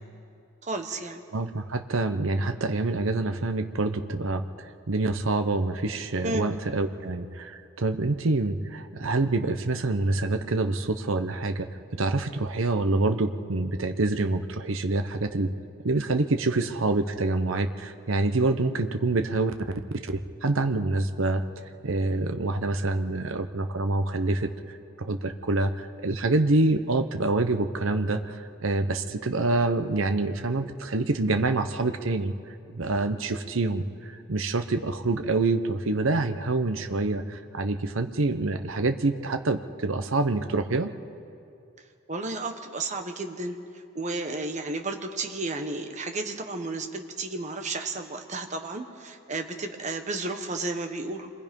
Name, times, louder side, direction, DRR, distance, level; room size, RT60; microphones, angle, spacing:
voice 1, 0.6-1.2 6.2-6.5 42.1-51.3, right 2 dB, 35° right, 5 dB, 1.4 m, -33 dB
voice 2, 1.3-11.7 12.0-15.5 15.8-19.5 20.0-20.1 20.4-21.5 21.8-24.5 25.0-32.3 32.7-40.9, right 2 dB, 75° right, 7 dB, 0.9 m, -26 dB
27.0 x 22.0 x 5.4 m, 2.5 s
head